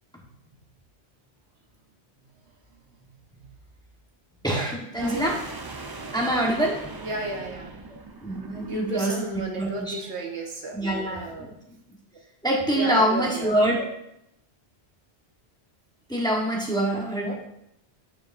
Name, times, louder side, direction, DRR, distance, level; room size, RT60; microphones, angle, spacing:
voice 1, 4.4-5.4 6.1-6.7 8.2-9.9 10.7-11.5 12.4-13.8 16.1-17.3, right 1 dB, 5° left, -2 dB, 1.2 m, -25 dB
sound 1, 4.9-9.3, right 3 dB, 30° right, 0.4 m, -40 dB
voice 2, 7.0-7.7 8.6-11.5 12.7-13.5 17.2-17.3, right 2 dB, 75° right, 0 dB, 1.5 m, -33 dB
9.5 x 6.7 x 2.6 m, 0.78 s
omnidirectional pair, 1.1 m